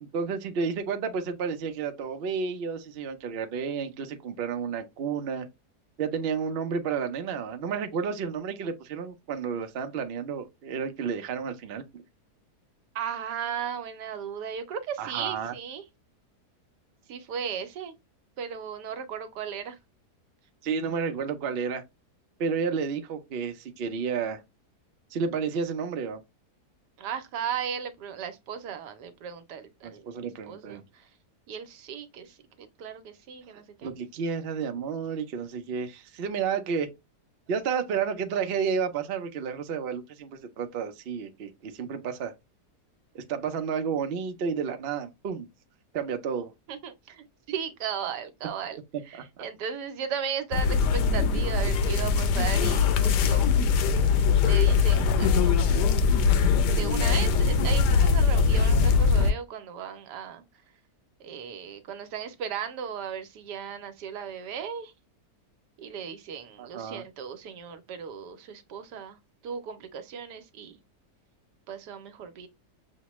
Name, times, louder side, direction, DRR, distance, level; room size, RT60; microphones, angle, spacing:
voice 1, 0.0-5.5 6.0-12.0 15.0-15.5 20.6-21.8 22.4-24.4 25.1-26.2 29.8-30.8 33.8-36.9 37.5-42.3 43.1-45.5 45.9-46.5 66.6-67.0, right 6 dB, 60° right, 0.6 m, -31 dB
voice 2, 12.9-15.8 17.1-17.9 18.4-19.8 27.0-31.1 31.5-33.9 46.7-53.5 53.9-54.1 54.4-55.9 56.7-60.4 61.2-64.9 65.8-69.2 69.4-70.8 71.7-72.5, right 7 dB, 85° right, 1.3 m, -36 dB
sound 1, 50.5-59.3, left 5 dB, 85° left, 1.2 m, -22 dB
6.5 x 2.2 x 2.9 m
omnidirectional pair, 1.7 m